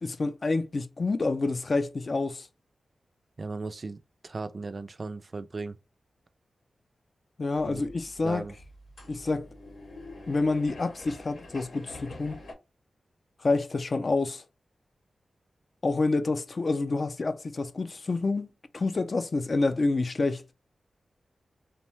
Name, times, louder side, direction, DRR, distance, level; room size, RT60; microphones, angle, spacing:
voice 1, 0.0-2.5 7.4-8.4 9.1-9.5 10.3-12.4 13.4-14.4 15.8-18.5 18.7-20.4, left 3 dB, 50° left, 0.4 m, -28 dB
voice 2, 3.4-5.8 7.7-7.8 8.2-8.5, right 3 dB, 50° right, 0.3 m, -36 dB
sound 1, 7.6-12.5, left 2 dB, 85° left, 0.8 m, -46 dB
2.7 x 2.1 x 3.0 m
cardioid pair, 55°, 0 cm